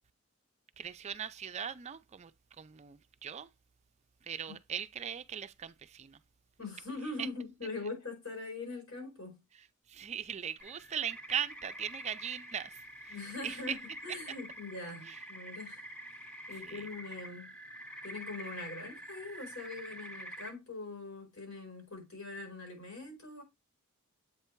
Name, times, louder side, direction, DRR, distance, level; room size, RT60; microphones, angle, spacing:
voice 1, 0.8-2.3 2.6-3.5 4.2-6.2 7.2-7.3 9.6-13.2 13.4-13.8 15.0-15.2 16.6-16.9, right 8 dB, 30° right, 0.4 m, -39 dB
voice 2, 6.6-9.4 13.1-15.8 16.5-17.5 18.0-23.4, left 3 dB, 90° left, 4.8 m, -42 dB
sound 1, 10.6-20.5, equal, 5° left, 0.8 m, -47 dB
8.1 x 3.3 x 4.4 m
head